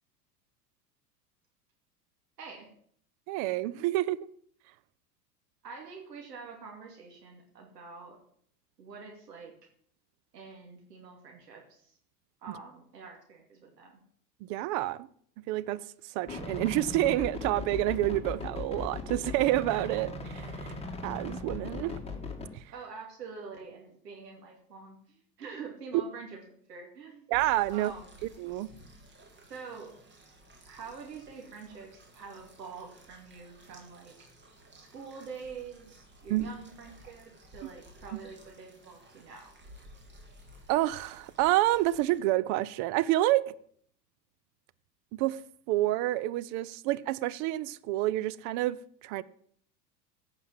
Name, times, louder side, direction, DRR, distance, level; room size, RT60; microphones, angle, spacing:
voice 1, 2.4-2.7 5.6-8.2 8.8-9.5 10.3-11.9 12.4-14.0 22.7-27.3 27.7-28.1 29.5-30.0 30.7-34.1 34.7-39.5, right 5 dB, 70° right, 2.8 m, -46 dB
voice 2, 3.3-4.2 12.5-12.6 14.4-15.1 15.5-20.7 21.0-21.9 22.5-22.6 27.3-27.9 28.2-28.7 36.3-36.5 38.1-38.2 40.7-43.5 45.1-45.4 45.7-48.8 49.0-49.2, right 16 dB, 35° right, 0.6 m, -28 dB
sound 1, 16.3-22.5, left 3 dB, 10° left, 2.3 m, -38 dB
sound 2, 27.3-42.2, equal, 20° right, 2.7 m, -55 dB
15.0 x 5.9 x 7.6 m
figure-of-eight pair, 90°, 50 cm